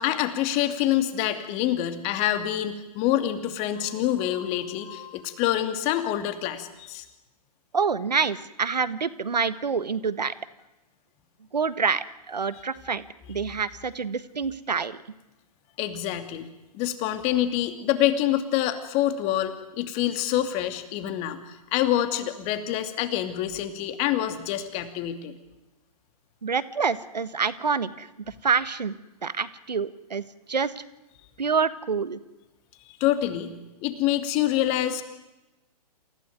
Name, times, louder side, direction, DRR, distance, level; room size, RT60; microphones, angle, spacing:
voice 1, 0.0-7.1 15.8-16.5 16.7-25.3 33.0-33.5 33.8-35.0, left 12 dB, 30° left, 9 dB, 2.6 m, -26 dB
voice 2, 7.7-10.3 11.5-13.0 13.3-15.0 26.4-29.0 29.2-30.8 31.4-32.2, right 5 dB, 80° right, 15 dB, 1.5 m, -27 dB
28.0 x 16.5 x 9.5 m, 1.0 s
figure-of-eight pair, 125°, 21 cm